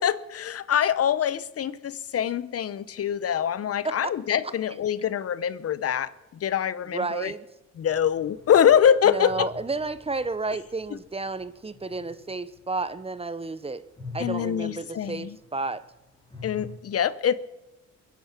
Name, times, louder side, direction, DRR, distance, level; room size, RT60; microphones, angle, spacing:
voice 1, 0.0-6.1 6.4-7.3 7.8-9.5 14.2-15.4 16.4-17.3, left 9 dB, 50° left, 0.8 m, -24 dB
voice 2, 6.9-7.5 9.1-13.8 14.1-15.8, right 3 dB, 20° right, 0.8 m, -31 dB
sound 1, 7.8-13.4 13.8-16.7, left 3 dB, 15° left, 4.6 m, -46 dB
22.0 x 10.5 x 6.0 m
cardioid pair, 90°, 30 cm